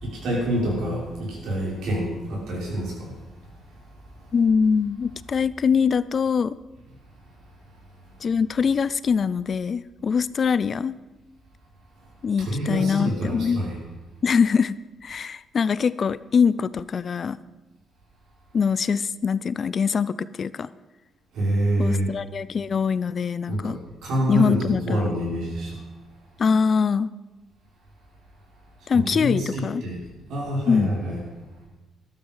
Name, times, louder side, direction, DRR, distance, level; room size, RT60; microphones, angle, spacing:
voice 1, 0.0-3.1 12.4-13.8 21.3-22.1 23.5-23.7 24.0-25.7 28.9-29.9 30.3-31.2, right 1 dB, 75° right, -3 dB, 6.2 m, -26 dB
voice 2, 4.3-6.6 8.2-11.0 12.2-13.6 14.2-14.8 15.0-17.4 18.5-20.7 21.8-23.8 24.3-25.1 26.4-27.1 28.9-29.8 30.7-30.9, left 6 dB, 45° left, 18 dB, 0.5 m, -23 dB
13.5 x 12.5 x 5.7 m, 1.1 s
cardioid pair, 90°, 0 cm